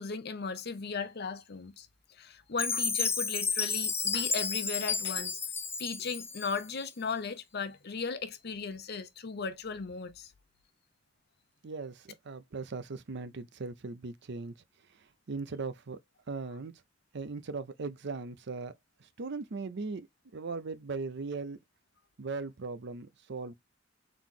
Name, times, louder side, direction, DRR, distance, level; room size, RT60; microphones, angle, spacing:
voice 1, 0.0-5.4 5.8-10.3, left 5 dB, 55° left, 0.7 m, -37 dB
Chime, 2.6-6.8, left 5 dB, 10° left, 0.4 m, -32 dB
voice 2, 11.6-14.5 14.9-16.0 16.3-16.7 17.1-18.7 19.0-20.1 20.3-21.6 22.2-23.5, right 4 dB, 60° right, 0.6 m, -39 dB
3.9 x 3.0 x 3.7 m
head